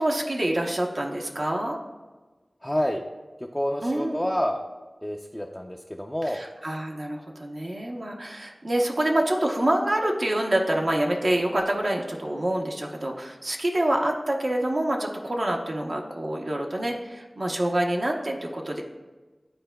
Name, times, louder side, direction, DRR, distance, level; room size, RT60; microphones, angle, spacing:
voice 1, 0.0-1.8 3.8-4.2 6.2-18.8, right 1 dB, 55° right, 0 dB, 0.8 m, -26 dB
voice 2, 2.6-3.0 3.5-4.6 5.0-6.4, equal, 10° left, 1 dB, 0.4 m, -28 dB
10.5 x 4.4 x 2.2 m, 1.3 s
wide cardioid pair, 60°, 0 cm